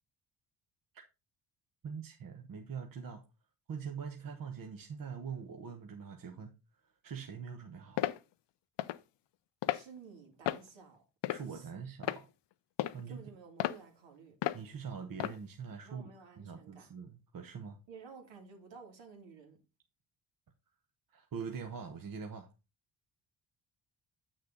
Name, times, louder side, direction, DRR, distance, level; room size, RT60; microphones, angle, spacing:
voice 1, 1.8-3.2 3.7-6.5 7.0-8.1 11.3-12.3 12.9-13.2 14.5-16.1 16.4-17.8 21.1-22.5, right 6 dB, 50° right, 1.2 m, -43 dB
sound 1, 8.0-8.2 8.8-9.0 9.6-9.8 10.5-10.7 11.2-11.6 12.0-12.2 12.8-13.0 13.6-13.8 14.4-14.6 15.2-15.4, left 14 dB, 70° left, 0.6 m, -33 dB
voice 2, 9.7-11.0 11.3-11.8 13.0-14.4 15.8-16.9 17.9-19.6, right 5 dB, 75° right, 2.9 m, -53 dB
8.1 x 6.4 x 3.9 m
cardioid pair, 90°, 44 cm